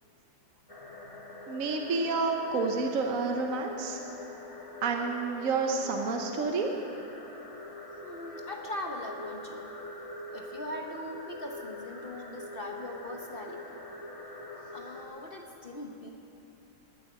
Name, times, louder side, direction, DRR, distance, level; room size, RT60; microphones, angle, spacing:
sound 1, 0.7-15.0, left 2 dB, 20° left, 1.5 m, -43 dB
voice 1, 1.5-4.0 4.8-6.7, right 4 dB, 55° right, 3 dB, 1.0 m, -29 dB
voice 2, 8.0-9.7 10.3-13.8 14.7-16.1, left 1 dB, 50° left, 2 dB, 0.7 m, -41 dB
16.5 x 6.9 x 9.7 m, 2.9 s
omnidirectional pair, 2.1 m